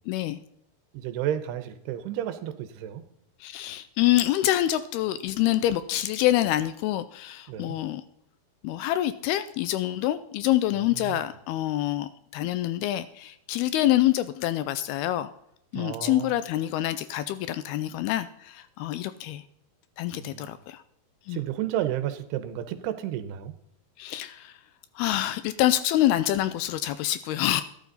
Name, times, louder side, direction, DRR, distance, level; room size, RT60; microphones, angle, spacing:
voice 1, 0.1-0.4 3.4-8.0 8.6-15.3 15.7-19.4 20.0-20.8 21.3-21.4 24.0-24.6 25.0-27.6, left 14 dB, 80° left, 13 dB, 2.4 m, -26 dB
voice 2, 0.9-3.0 7.5-7.8 10.7-11.2 15.7-16.4 20.1-20.5 21.3-23.5, right 11 dB, 80° right, 10 dB, 2.9 m, -32 dB
13.0 x 12.0 x 4.0 m, 0.75 s
omnidirectional pair, 4.8 m